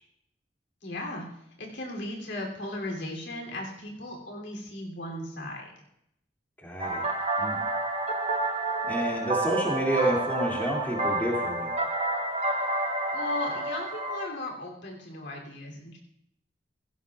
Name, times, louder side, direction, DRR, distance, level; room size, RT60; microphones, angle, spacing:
voice 1, 0.8-1.2 1.6-5.7 13.1-16.0, left 1 dB, 75° left, 0 dB, 3.0 m, -36 dB
voice 2, 6.6-7.1 7.4-7.6 8.9-11.7, right 1 dB, 10° left, -3 dB, 2.4 m, -29 dB
sound 1, 6.8-14.3, right 2 dB, 35° right, 1.0 m, -29 dB
17.0 x 16.0 x 2.4 m, 0.79 s
head